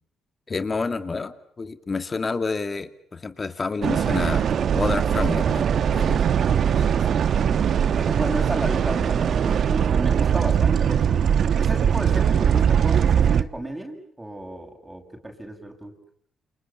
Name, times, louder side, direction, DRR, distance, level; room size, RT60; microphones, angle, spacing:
voice 1, 0.5-4.5 4.7-6.2, left 4 dB, 30° left, 9 dB, 2.4 m, -29 dB
sound 1, 3.8-13.4, right 8 dB, 60° right, 1.2 m, -21 dB
voice 2, 7.9-11.3 11.6-15.9, right 1 dB, 15° right, 4 dB, 6.7 m, -33 dB
30.0 x 28.5 x 7.0 m, 0.62 s
cardioid pair, 90°, 0 cm